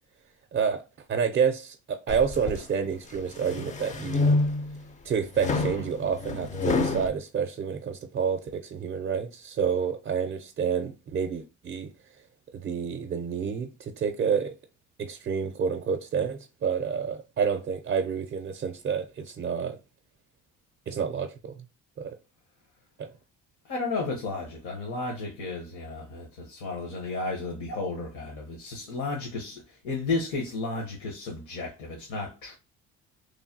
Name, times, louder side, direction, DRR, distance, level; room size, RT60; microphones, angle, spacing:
voice 1, 0.5-0.8 1.1-4.4 5.0-11.9 12.5-14.5 15.0-19.8 20.9-21.7 22.0-22.2 23.0-23.1, right 6 dB, 35° right, 0.4 m, -29 dB
sound 1, 2.1-2.6 3.2-4.8 5.4-7.1, left 3 dB, 25° left, 0.3 m, -27 dB
voice 2, 23.6-32.6, left 3 dB, 80° left, 1.0 m, -33 dB
3.1 x 2.2 x 2.6 m
cardioid pair, 105°, 30 cm